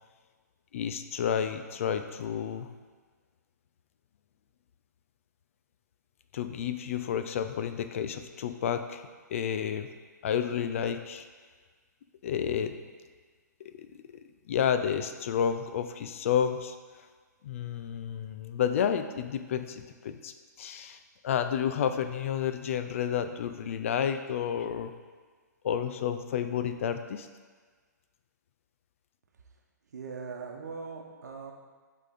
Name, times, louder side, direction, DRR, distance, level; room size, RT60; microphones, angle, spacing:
voice 1, 0.7-2.7 6.3-9.0 9.3-9.9 10.2-11.3 12.2-12.8 13.6-13.9 14.5-16.8 17.4-24.9 25.6-27.3, left 8 dB, 45° left, 9 dB, 0.4 m, -30 dB
voice 2, 29.9-31.5, right 5 dB, 60° right, 2 dB, 1.0 m, -40 dB
8.0 x 3.8 x 4.0 m, 1.5 s
figure-of-eight pair, 125°, 10 cm